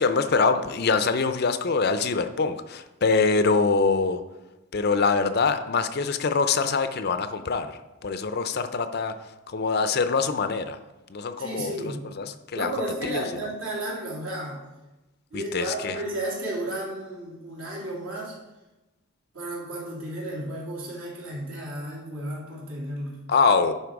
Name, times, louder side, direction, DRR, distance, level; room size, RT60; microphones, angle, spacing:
voice 1, 0.0-4.2 4.7-7.7 8.0-9.1 9.5-10.8 11.1-11.7 12.2-12.7 13.1-13.2 15.3-16.0 23.3-23.7, left 4 dB, 45° left, 10 dB, 0.5 m, -24 dB
voice 2, 11.4-12.1 12.5-14.6 15.3-18.3 19.3-23.2, right 1 dB, 70° right, -4 dB, 3.0 m, -33 dB
11.0 x 4.4 x 4.7 m, 1.1 s
head